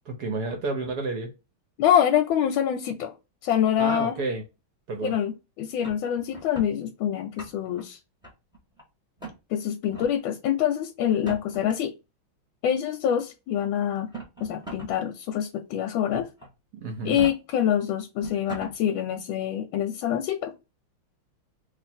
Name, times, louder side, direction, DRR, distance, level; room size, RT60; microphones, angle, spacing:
voice 1, 0.1-1.3 3.8-4.4 4.9-5.1 16.7-17.3, right 3 dB, 65° right, 1.0 m, -30 dB
voice 2, 1.8-3.1 3.4-4.2 5.0-8.0 9.5-11.9 12.6-14.1 14.4-16.3 17.0-20.5, left 10 dB, 75° left, 1.3 m, -25 dB
sound 1, 5.8-6.7 7.2-7.8 8.2-8.8 9.2-9.4 9.9-10.1 11.1-11.7 12.8-12.9 13.9-14.9 15.3-15.4 16.1-16.5 17.0-17.3 17.9-18.0 18.2-18.7, right 3 dB, ahead, 1.1 m, -39 dB
3.2 x 2.5 x 4.2 m
omnidirectional pair, 2.4 m